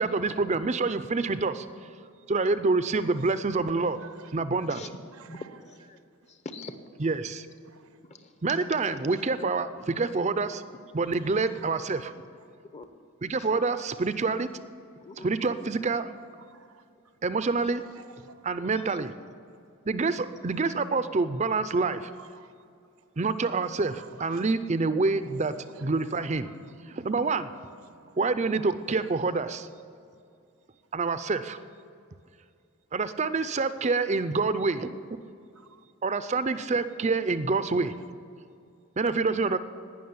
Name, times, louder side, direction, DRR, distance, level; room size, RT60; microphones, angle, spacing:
voice 1, 0.0-1.7 2.3-4.0 4.3-4.8 7.0-7.5 8.4-10.6 10.9-12.1 13.2-14.5 15.2-16.1 17.2-17.8 18.4-19.1 19.9-22.0 23.2-25.5 25.8-26.5 26.9-27.5 28.2-29.7 30.9-31.6 32.9-34.9 36.0-37.9 39.0-39.6, right 3 dB, 30° right, 0.5 m, -27 dB
voice 2, 4.0-4.3 7.7-7.8 11.3-11.4 16.5-16.7 18.0-18.3 22.4-22.5 24.2-24.4 25.2-25.8 26.4-27.1 35.6-35.8, right 4 dB, 85° right, 0.9 m, -51 dB
voice 3, 4.7-5.4 5.6-6.0 6.3-6.8 8.0-8.3 8.7-9.0 10.7-10.8 12.7-12.9 13.4-13.5 15.0-15.3 17.6-17.7 18.5-19.0, left 3 dB, 30° left, 0.8 m, -45 dB
18.5 x 6.3 x 9.5 m
head